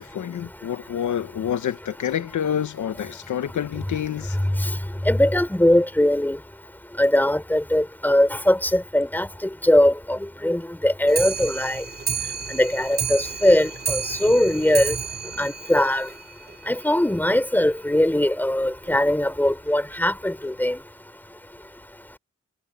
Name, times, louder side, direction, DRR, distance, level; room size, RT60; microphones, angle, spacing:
voice 1, 0.0-4.4, left 9 dB, 80° left, 1.2 m, -28 dB
voice 2, 5.1-6.4 7.0-9.3 9.6-11.8 12.5-14.9 15.4-16.1 16.7-20.8, left 1 dB, 5° left, 3.8 m, -20 dB
Clock, 11.1-16.6 16.9-17.0 17.3-17.4 17.7-17.8 18.1-18.2 18.9-19.0 19.7-19.8 20.4-20.5, right 6 dB, 30° right, 3.4 m, -31 dB
wide cardioid pair, 110°, 29 cm